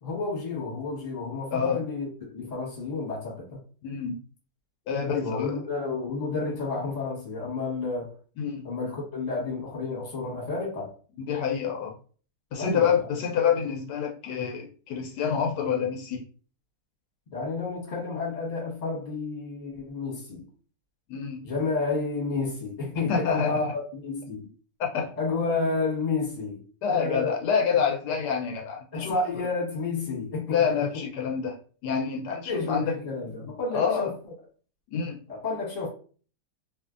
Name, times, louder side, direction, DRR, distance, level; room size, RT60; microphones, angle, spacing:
voice 1, 0.0-3.6 5.1-8.1 8.6-10.9 12.5-12.9 17.3-20.5 21.4-24.4 25.2-26.6 26.9-27.3 28.9-30.7 32.4-34.1 35.3-35.9, left 3 dB, 30° left, 1.0 m, -30 dB
voice 2, 3.8-4.1 4.9-5.6 8.4-8.7 11.2-11.9 12.5-16.2 21.1-21.4 23.1-23.6 24.8-25.1 26.8-29.2 30.5-32.9 33.7-34.1 34.9-35.2, left 7 dB, 80° left, 1.1 m, -27 dB
2.7 x 2.5 x 2.4 m
omnidirectional pair, 1.8 m